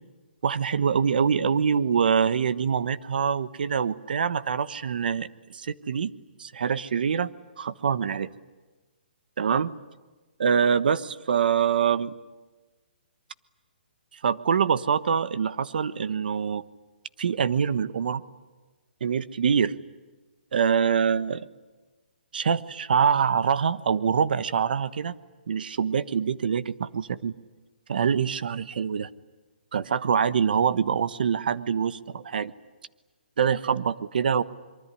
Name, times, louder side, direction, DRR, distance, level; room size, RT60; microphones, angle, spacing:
voice 1, 0.4-6.1 6.4-7.3 7.6-8.3 9.4-9.7 10.4-12.1 14.2-16.6 17.2-18.2 19.0-19.7 20.5-21.5 22.3-25.1 25.5-27.3 27.9-29.1 29.7-32.5 33.4-34.4, right 7 dB, 60° right, 15 dB, 1.2 m, -25 dB
25.0 x 23.5 x 10.0 m, 1.2 s
hypercardioid pair, 165°, 5 cm